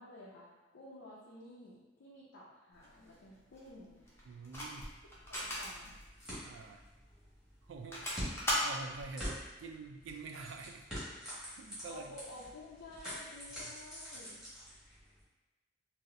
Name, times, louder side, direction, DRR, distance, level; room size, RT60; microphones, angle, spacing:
voice 1, 0.0-4.1 5.3-6.0 11.9-14.4, left 1 dB, 85° left, -6 dB, 0.5 m, -52 dB
sound 1, 2.7-9.1, left 1 dB, 15° left, 0.6 m, -39 dB
voice 2, 4.3-4.9 6.4-6.8 7.6-8.0 8.6-10.9 11.6-12.1 13.6-13.7, right 4 dB, 80° right, 5 dB, 0.3 m, -47 dB
sound 2, 4.9-15.2, equal, 5° right, 1.2 m, -47 dB
4.0 x 2.0 x 2.5 m, 1.1 s
head